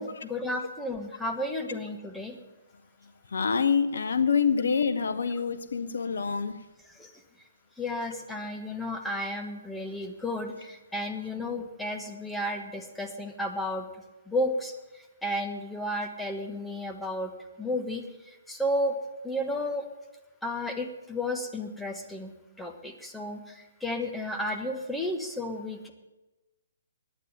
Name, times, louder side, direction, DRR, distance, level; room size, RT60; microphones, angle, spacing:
voice 1, 0.0-2.4 6.9-7.1 7.8-13.9 14.3-17.3 17.6-19.0 19.2-19.9 20.4-25.9, left 1 dB, 5° left, 1.3 m, -33 dB
voice 2, 3.3-6.6, left 6 dB, 65° left, 0.8 m, -26 dB
10.0 x 9.1 x 9.1 m
figure-of-eight pair, 130°, 0 cm